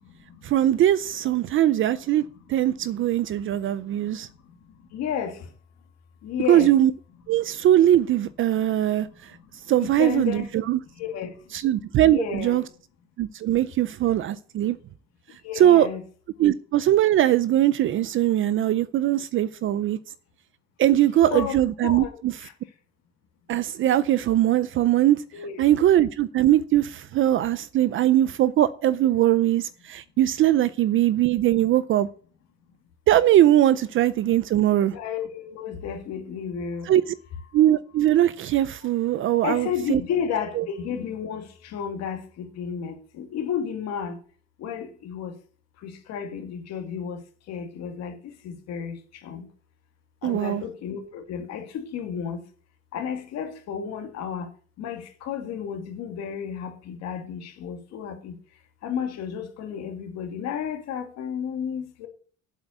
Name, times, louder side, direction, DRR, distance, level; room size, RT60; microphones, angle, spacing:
voice 1, 0.4-2.2 2.5-4.3 6.5-6.9 7.3-9.3 9.7-10.8 11.5-12.6 13.2-14.8 15.6-15.9 16.4-20.0 20.8-22.3 23.5-25.2 25.6-32.1 33.1-35.0 36.9-37.1 37.5-40.0 40.6-40.7 50.2-50.6, right 12 dB, 45° right, 0.5 m, -21 dB
voice 2, 4.9-5.3 6.2-6.7 9.8-10.4 11.0-11.3 12.0-12.6 15.4-16.0 21.3-21.5 21.8-22.1 25.3-25.6 34.9-36.9 39.4-41.4 41.7-42.2 42.6-44.2 44.6-45.3 45.8-47.2 47.5-48.2 48.4-49.0 49.2-49.4 50.2-52.4 52.9-54.5 54.8-58.3 58.8-62.1, left 8 dB, 60° left, 2.5 m, -32 dB
8.2 x 7.9 x 8.1 m
cardioid pair, 165°, 29 cm